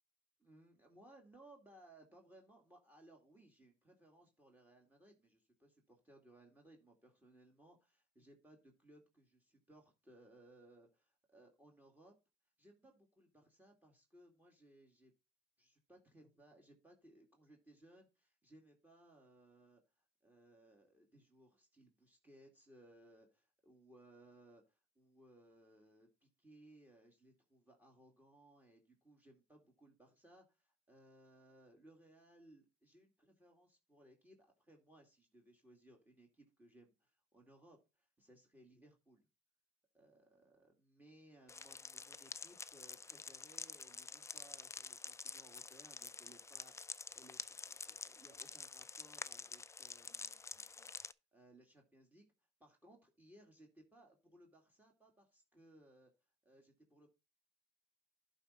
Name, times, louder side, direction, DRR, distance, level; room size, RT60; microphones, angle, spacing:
voice 1, 0.4-12.1 12.6-15.1 15.6-39.3 39.9-50.9 51.3-52.2 52.6-56.1 56.4-57.1, right 1 dB, 10° right, 2 dB, 2.3 m, -64 dB
sound 1, 41.5-51.1, left 4 dB, 15° left, 0.4 m, -48 dB
11.5 x 4.3 x 5.0 m, 0.27 s
cardioid pair, 110°, 17 cm